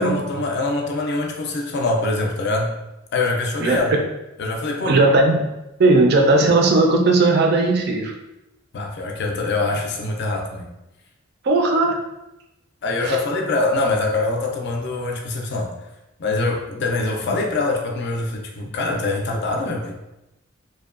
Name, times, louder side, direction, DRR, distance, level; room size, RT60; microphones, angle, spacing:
voice 1, 0.0-2.7 3.1-3.9 4.4-5.0 8.7-10.7 12.8-15.7 16.2-20.0, left 2 dB, 55° left, 1 dB, 0.4 m, -24 dB
voice 2, 4.8-5.5 5.8-8.1 11.4-12.0 13.0-13.2 17.3-17.4, right 2 dB, 50° right, 2 dB, 0.4 m, -17 dB
2.6 x 2.2 x 2.4 m, 0.95 s
head